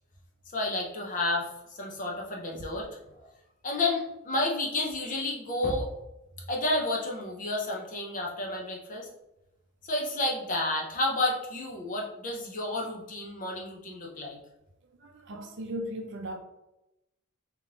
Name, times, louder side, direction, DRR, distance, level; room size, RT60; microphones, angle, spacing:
voice 1, 0.5-2.9 3.6-5.9 6.5-9.1 9.8-14.4, left 2 dB, 40° left, 0.7 m, -31 dB
voice 2, 15.0-16.4, equal, 55° right, 0.5 m, -37 dB
3.6 x 3.0 x 3.7 m
head